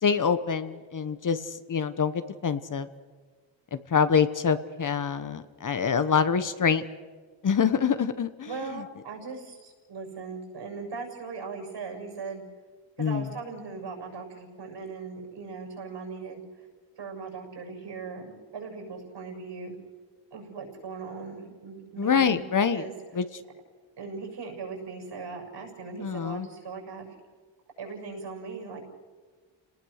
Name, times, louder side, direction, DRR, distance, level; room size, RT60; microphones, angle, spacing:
voice 1, 0.0-2.9 3.7-6.8 7.4-8.8 13.0-13.3 22.0-22.8 23.2-23.3 26.0-26.5, left 6 dB, 40° left, 12 dB, 1.1 m, -25 dB
voice 2, 8.4-12.4 13.0-16.7 17.0-19.8 20.3-22.4 22.7-22.9 24.0-27.1 27.8-28.8, right 4 dB, 65° right, 3 dB, 7.2 m, -39 dB
29.0 x 19.0 x 6.5 m, 1.4 s
cardioid pair, 95°, 46 cm